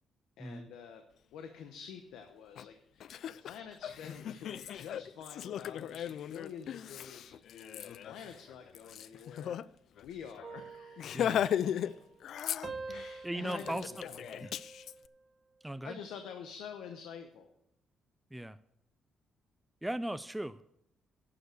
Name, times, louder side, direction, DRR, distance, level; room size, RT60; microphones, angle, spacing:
voice 1, 0.4-1.0 1.3-9.5 9.9-11.5 11.8-11.9 12.9-14.1 15.8-17.5, left 7 dB, 90° left, 6 dB, 1.0 m, -48 dB
Laughter, 2.6-2.7 3.0-9.6 10.0-10.1 10.4-10.6 11.0-11.9 12.2-13.0 13.5-14.9, left 9 dB, 70° left, 0.3 m, -37 dB
sound 1, 10.4-12.3 12.6-15.2 15.7-16.0, right 4 dB, 35° right, 1.6 m, -48 dB
voice 2, 13.2-13.9 14.4-14.5 15.6-16.0 18.3-18.6 19.8-20.6, right 1 dB, 5° right, 12 dB, 0.4 m, -38 dB
11.5 x 6.9 x 6.6 m, 0.78 s
cardioid pair, 90°, 0 cm